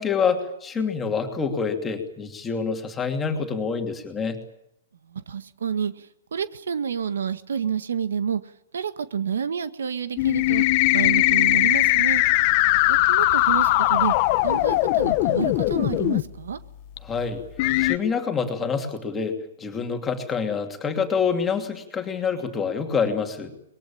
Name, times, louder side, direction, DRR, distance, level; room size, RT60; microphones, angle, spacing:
voice 1, 0.0-4.4 17.0-17.4 17.8-23.5, left 5 dB, 10° left, 4 dB, 2.7 m, -26 dB
voice 2, 5.1-8.4 8.7-12.2 12.9-14.1 14.4-16.6, right 7 dB, 90° right, 12 dB, 1.7 m, -29 dB
sound 1, 10.2-16.2 17.0-17.1 17.6-18.0, left 18 dB, 30° left, 0.9 m, -20 dB
25.0 x 21.5 x 8.8 m, 0.80 s
hypercardioid pair, 165°, 0 cm